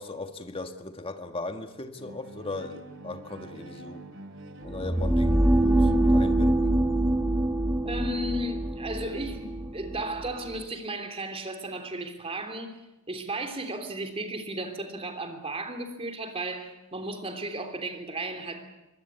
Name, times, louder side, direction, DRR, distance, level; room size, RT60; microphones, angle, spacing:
voice 1, 0.0-4.0 4.6-6.8, left 2 dB, 25° left, 1.7 m, -38 dB
Bowed string instrument, 2.0-6.9, right 1 dB, 60° right, 2.4 m, -46 dB
sound 1, 4.7-10.6, right 1 dB, 10° right, 1.5 m, -24 dB
voice 2, 7.8-12.8 13.1-18.6, right 1 dB, 25° right, 3.3 m, -34 dB
25.0 x 19.5 x 8.3 m
head